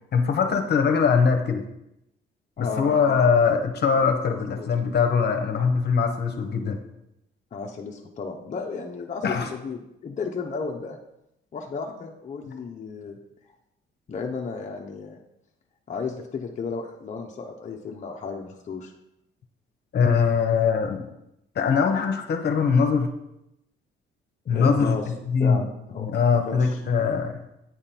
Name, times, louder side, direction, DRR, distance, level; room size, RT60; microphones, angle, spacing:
voice 1, 0.1-1.6 2.6-6.8 9.2-9.5 19.9-21.1 21.5-23.1 24.5-25.7 26.0-27.4, left 5 dB, 55° left, 6 dB, 0.9 m, -22 dB
voice 2, 2.6-3.3 4.2-4.7 7.5-11.0 11.5-13.2 13.5-13.6 14.1-15.2 15.9-18.9 24.5-25.1 25.4-26.1 26.5-26.8, left 4 dB, 40° left, 0 dB, 0.7 m, -34 dB
8.9 x 3.7 x 4.4 m, 0.85 s
cardioid pair, 90°, 20 cm